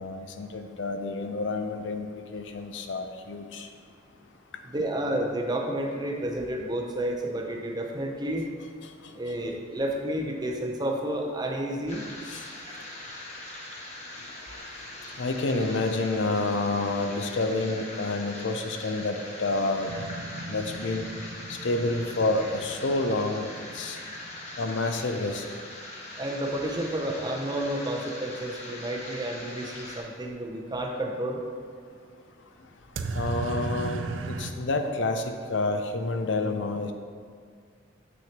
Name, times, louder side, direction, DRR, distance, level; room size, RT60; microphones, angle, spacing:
voice 1, 0.0-3.7 8.8-9.2 12.2-12.5 14.2-14.3 15.1-19.9 20.5-21.1 21.5-24.0 24.6-25.4 33.1-36.9, left 2 dB, 70° left, 6 dB, 0.5 m, -29 dB
voice 2, 4.6-8.5 9.1-12.1 26.2-31.4, right 1 dB, 20° right, 1 dB, 0.6 m, -31 dB
sound 1, 11.9-30.0, left 1 dB, 35° left, 1.1 m, -42 dB
sound 2, 19.8-25.6 32.9-34.5, right 3 dB, 80° right, 0.4 m, -37 dB
7.6 x 6.1 x 2.9 m, 2.1 s
head